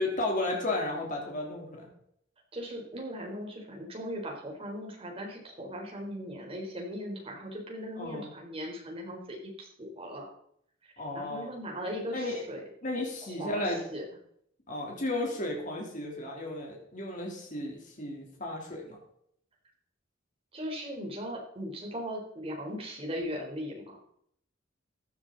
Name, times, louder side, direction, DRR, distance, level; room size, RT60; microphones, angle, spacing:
voice 1, 0.0-1.9 8.0-8.3 11.0-11.5 12.1-12.4 12.8-13.8 14.7-19.0, left 2 dB, 40° left, -1 dB, 3.5 m, -33 dB
voice 2, 2.5-10.3 10.8-12.6 13.2-14.0 20.5-24.0, equal, 30° right, 0 dB, 4.0 m, -38 dB
15.5 x 10.5 x 4.1 m, 0.69 s
head